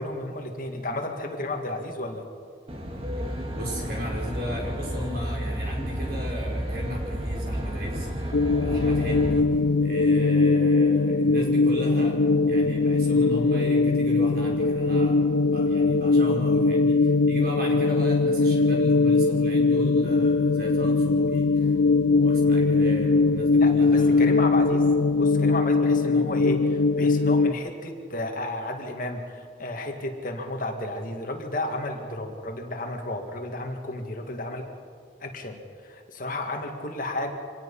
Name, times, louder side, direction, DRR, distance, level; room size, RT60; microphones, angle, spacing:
voice 1, 0.0-2.2 23.6-24.9 25.2-34.7 35.2-37.3, left 1 dB, 50° left, 3 dB, 2.2 m, -32 dB
Aircraft, 2.7-9.4, equal, 30° right, 2.1 m, -31 dB
voice 2, 3.6-9.5 9.8-15.2 15.5-21.7 22.0-24.3, equal, 55° right, -1 dB, 5.5 m, -36 dB
sound 1, 8.3-27.5, left 3 dB, 85° left, 0.5 m, -21 dB
25.5 x 18.5 x 5.7 m, 2.1 s
head